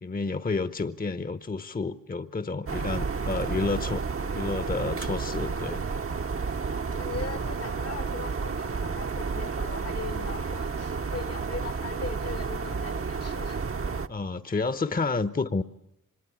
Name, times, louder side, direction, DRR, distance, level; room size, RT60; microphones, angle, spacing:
voice 1, 0.0-4.0 4.3-5.8 14.1-15.6, left 3 dB, 25° left, 1.0 m, -30 dB
sound 1, 2.7-14.1, right 5 dB, 40° right, 1.0 m, -31 dB
voice 2, 7.0-13.6, left 5 dB, 50° left, 1.3 m, -39 dB
25.0 x 21.0 x 8.6 m
cardioid pair, 65°, 33 cm